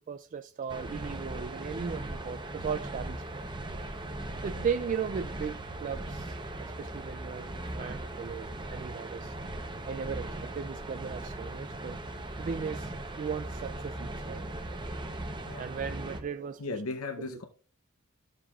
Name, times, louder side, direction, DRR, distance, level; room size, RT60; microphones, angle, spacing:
voice 1, 0.1-3.4 4.4-7.5 7.8-9.4 9.9-12.0 12.4-14.5 15.6-16.6 17.2-17.4, right 6 dB, 35° right, 0.3 m, -37 dB
sound 1, 0.7-16.2, right 1 dB, 20° right, 0.8 m, -39 dB
voice 2, 16.6-17.4, left 3 dB, 70° left, 0.8 m, -37 dB
13.0 x 7.4 x 2.4 m
head